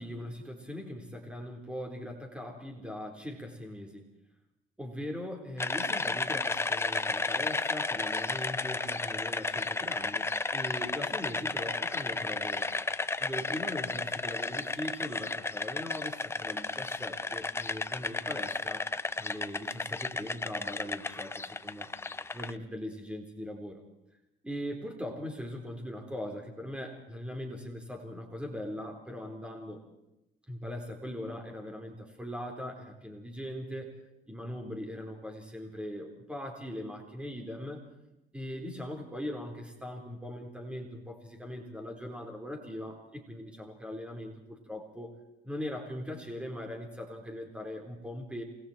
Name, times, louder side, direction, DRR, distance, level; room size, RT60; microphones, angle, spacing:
voice 1, 0.0-4.0 4.8-12.7 13.2-18.9 19.2-21.9 22.3-23.8 24.4-29.8 30.5-33.9 34.3-37.8 38.3-45.1 45.4-48.4, left 1 dB, 5° right, 2 dB, 4.1 m, -40 dB
sound 1, 5.6-22.5, left 3 dB, 15° left, 0.9 m, -33 dB
28.5 x 21.0 x 4.4 m, 0.90 s
cardioid pair, 110°, 17 cm